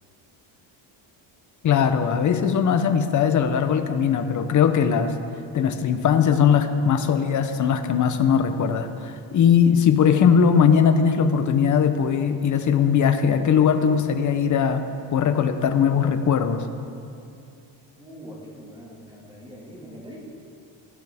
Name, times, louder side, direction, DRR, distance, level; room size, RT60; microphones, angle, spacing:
voice 1, 1.6-5.1 5.5-14.9 15.1-16.6, left 7 dB, 40° left, 8 dB, 0.8 m, -20 dB
voice 2, 18.0-20.2, equal, 10° right, -4 dB, 1.9 m, -42 dB
18.0 x 13.5 x 3.5 m, 2.5 s
cardioid pair, 175°, 47 cm